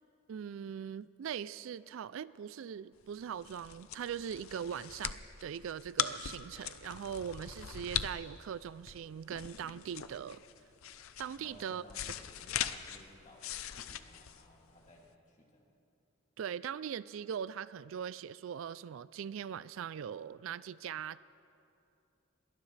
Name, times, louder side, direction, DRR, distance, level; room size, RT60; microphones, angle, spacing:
voice 1, 0.3-10.4 11.2-11.8 16.4-21.2, right 8 dB, 70° right, 0.3 m, -41 dB
sound 1, 3.1-15.1, left 10 dB, 80° left, 0.6 m, -41 dB
voice 2, 11.4-15.7, equal, 35° left, 2.5 m, -59 dB
21.5 x 19.0 x 3.3 m
head